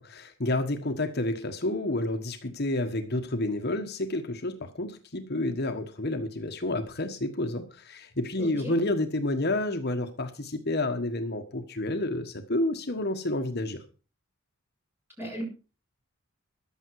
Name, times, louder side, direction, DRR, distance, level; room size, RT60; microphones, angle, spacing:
voice 1, 0.0-13.8, left 1 dB, 45° left, 5 dB, 1.4 m, -30 dB
voice 2, 8.4-8.7 15.2-15.4, equal, 10° right, -1 dB, 7.0 m, -37 dB
14.5 x 11.5 x 4.8 m, 0.35 s
head